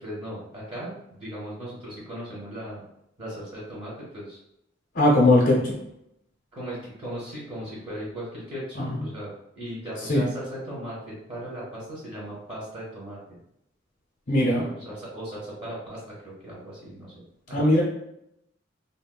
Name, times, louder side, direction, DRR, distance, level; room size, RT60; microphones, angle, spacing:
voice 1, 0.0-2.8 3.2-4.4 5.5-5.7 6.5-13.4 14.5-17.1 17.5-17.6, right 1 dB, 30° right, -7 dB, 0.9 m, -37 dB
voice 2, 4.9-5.6 8.8-9.1 10.1-10.2 14.3-14.7 17.5-17.8, left 1 dB, 55° left, -6 dB, 0.7 m, -19 dB
3.5 x 2.1 x 2.2 m, 0.79 s
head